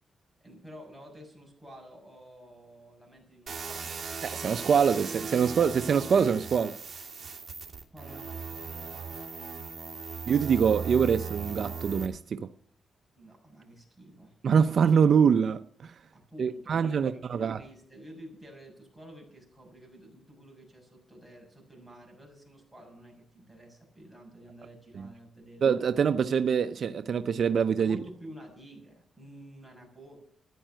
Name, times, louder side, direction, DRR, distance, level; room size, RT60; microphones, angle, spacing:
voice 1, 0.4-3.9 7.9-9.7 13.1-14.4 16.1-25.7 27.8-30.2, equal, 5° left, 6.6 m, -50 dB
sound 1, 3.5-12.1, right 5 dB, 40° right, 2.7 m, -38 dB
voice 2, 4.2-6.7 10.3-12.5 14.4-15.9 16.4-17.6 24.9-25.1 25.6-28.0, right 7 dB, 60° right, 0.6 m, -24 dB
14.0 x 10.0 x 7.5 m
cardioid pair, 115°, 0 cm